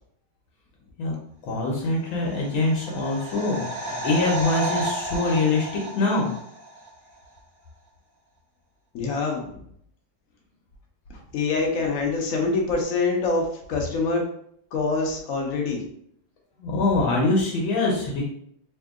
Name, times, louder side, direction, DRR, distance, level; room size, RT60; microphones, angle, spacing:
voice 1, 1.4-6.3 16.6-18.2, left 2 dB, 75° left, -2 dB, 1.5 m, -24 dB
sound 1, 2.0-6.9 7.2-7.3, right 1 dB, 85° right, 0.3 m, -32 dB
voice 2, 8.9-9.6 11.3-14.2 14.7-15.8, left 3 dB, 55° left, 0 dB, 0.9 m, -25 dB
3.6 x 2.7 x 3.5 m, 0.68 s
omnidirectional pair, 2.3 m